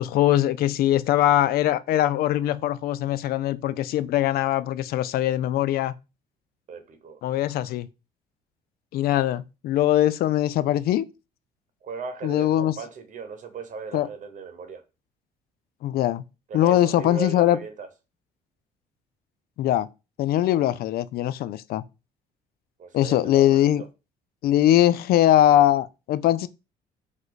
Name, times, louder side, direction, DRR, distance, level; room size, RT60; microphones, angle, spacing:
voice 1, 0.0-5.9 7.2-7.9 8.9-11.1 12.2-12.7 13.9-14.1 15.8-16.2 16.5-17.6 19.6-19.9 20.2-21.8 22.9-23.8 24.4-26.5, left 13 dB, 65° left, 0.4 m, -21 dB
voice 2, 6.7-7.2 11.8-14.8 16.5-17.9 22.8-23.7, right 5 dB, 50° right, 1.0 m, -37 dB
4.8 x 2.6 x 4.0 m
cardioid pair, 110°, 17 cm